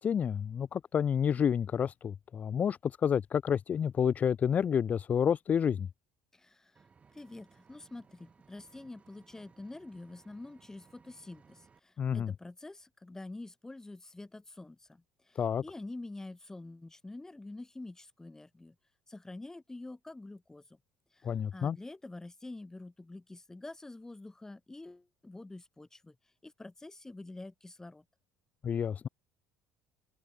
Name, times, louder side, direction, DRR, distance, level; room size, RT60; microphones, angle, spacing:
voice 1, 0.0-5.9 12.0-12.3 15.4-15.6 21.2-21.8 28.6-29.1, left 8 dB, 40° left, 0.5 m, -29 dB
voice 2, 6.3-6.7 7.1-15.0 15.3-18.7 19.1-20.6 21.5-26.1 26.4-28.0, left 2 dB, 15° left, 1.3 m, -47 dB
Engine, 6.8-11.8, right 5 dB, 30° right, 3.3 m, -62 dB
hypercardioid pair, 75°, 4 cm